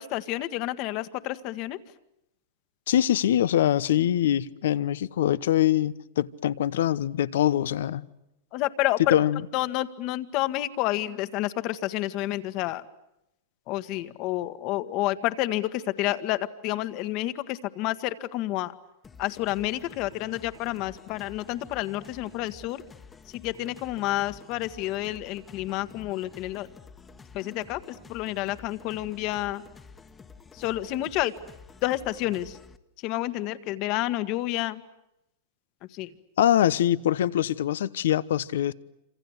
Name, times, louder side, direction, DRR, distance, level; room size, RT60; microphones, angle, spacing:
voice 1, 0.0-1.8 8.5-9.1 9.5-12.8 13.7-18.7 19.2-22.8 23.3-26.7 27.3-29.6 30.5-31.3 31.8-32.6 33.0-34.8 35.9-36.1, left 16 dB, 45° left, 1.6 m, -29 dB
voice 2, 2.9-8.0 9.1-9.4 36.4-38.7, left 11 dB, 75° left, 0.9 m, -23 dB
sound 1, 19.0-32.8, left 5 dB, 20° left, 1.5 m, -50 dB
27.0 x 26.5 x 8.2 m
hypercardioid pair, 120°, 0 cm